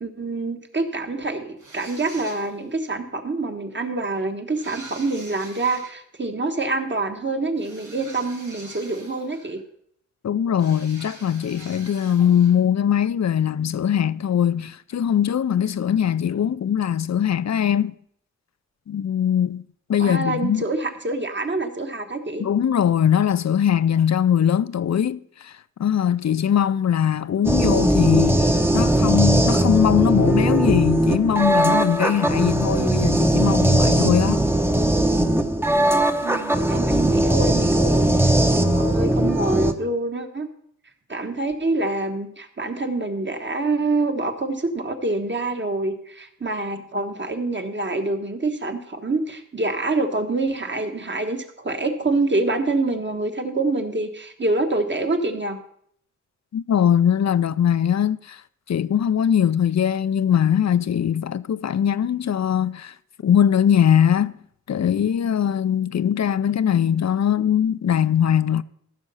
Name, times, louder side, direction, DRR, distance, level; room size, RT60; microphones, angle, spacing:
voice 1, 0.0-9.6 20.0-22.5 36.2-38.1 38.6-40.5 41.1-55.6, right 2 dB, 40° right, 1.3 m, -26 dB
sound 1, 1.6-2.7 4.5-6.0 7.6-9.6 10.6-12.6, right 2 dB, 85° right, 2.7 m, -44 dB
voice 2, 10.2-17.9 18.9-19.6 19.9-20.6 22.4-34.4 56.5-58.4 58.7-62.9 63.2-64.3 64.7-68.6, left 9 dB, 65° left, 0.5 m, -21 dB
sound 2, 27.4-39.7, right 1 dB, 10° right, 0.8 m, -19 dB
14.5 x 6.5 x 5.6 m
wide cardioid pair, 70°, 30 cm